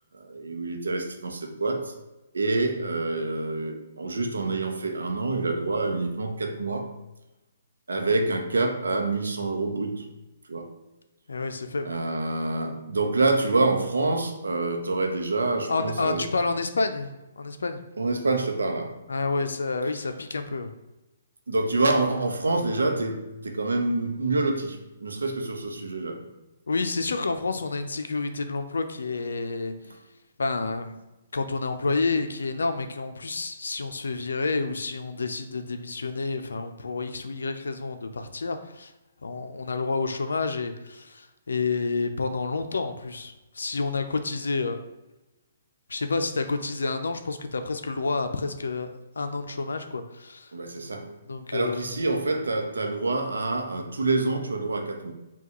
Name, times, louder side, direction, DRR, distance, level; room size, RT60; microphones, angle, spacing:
voice 1, 0.1-1.9 2.3-6.9 7.9-10.0 10.5-10.7 11.8-16.3 18.0-19.0 21.5-26.3 50.5-51.1 51.5-55.1, right 2 dB, 90° right, 4 dB, 0.7 m, -27 dB
voice 2, 11.3-11.9 15.7-17.8 19.1-20.7 26.7-29.7 30.4-31.0 31.3-38.9 39.2-44.8 45.9-50.5 51.3-51.9, left 3 dB, 85° left, 7 dB, 0.4 m, -29 dB
5.6 x 2.3 x 2.9 m, 1.0 s
hypercardioid pair, 140°, 0 cm